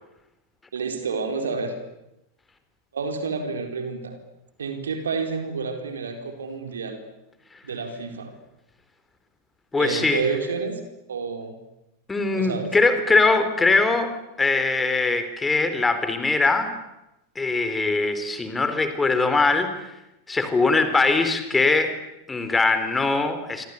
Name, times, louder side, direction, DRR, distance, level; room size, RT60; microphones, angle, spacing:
voice 1, 0.7-1.7 2.9-4.2 4.6-7.0 7.6-8.3 9.8-10.8 11.1-11.6 12.3-12.7, right 4 dB, 70° right, 5 dB, 4.4 m, -29 dB
voice 2, 9.7-10.2 12.1-16.7 17.4-19.7 20.3-21.9 22.3-23.7, left 3 dB, 10° left, 9 dB, 4.0 m, -21 dB
27.5 x 25.0 x 8.5 m, 0.91 s
figure-of-eight pair, 90°, 0 cm